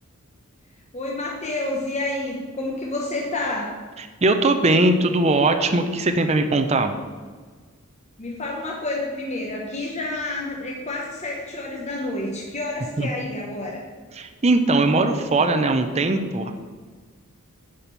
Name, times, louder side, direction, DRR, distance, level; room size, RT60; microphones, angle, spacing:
voice 1, 0.9-3.7 8.2-13.8, left 2 dB, 30° left, -2 dB, 1.0 m, -29 dB
voice 2, 4.0-6.9 13.0-13.1 14.1-16.5, right 2 dB, 30° right, 6 dB, 0.6 m, -20 dB
10.0 x 4.3 x 6.7 m, 1.4 s
head